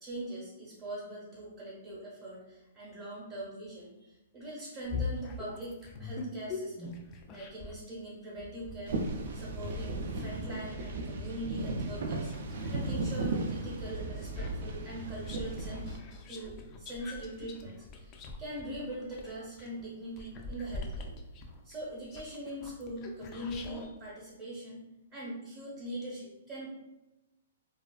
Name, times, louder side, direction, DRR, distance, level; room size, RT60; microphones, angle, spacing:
voice 1, 0.0-6.9 7.3-9.0 9.3-12.3 12.7-15.9 16.3-21.1 21.6-24.8 25.1-26.7, right 1 dB, 25° right, -8 dB, 0.8 m, -42 dB
sound 1, 4.8-7.8 8.4-12.7 13.2-23.9, left 3 dB, 25° left, 0.3 m, -43 dB
sound 2, 8.9-16.0, right 2 dB, 65° right, 0.4 m, -36 dB
2.4 x 2.3 x 2.3 m, 0.98 s
hypercardioid pair, 150°, 0 cm